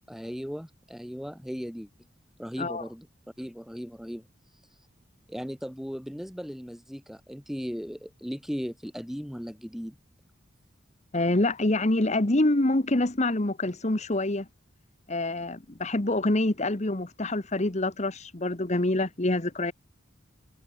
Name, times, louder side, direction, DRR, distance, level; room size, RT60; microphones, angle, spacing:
voice 1, 0.1-1.9 2.4-3.1 3.4-4.3 5.3-10.0, equal, ahead, 4.2 m, -37 dB
voice 2, 11.1-14.5 15.1-19.7, left 2 dB, 35° left, 1.2 m, -26 dB
head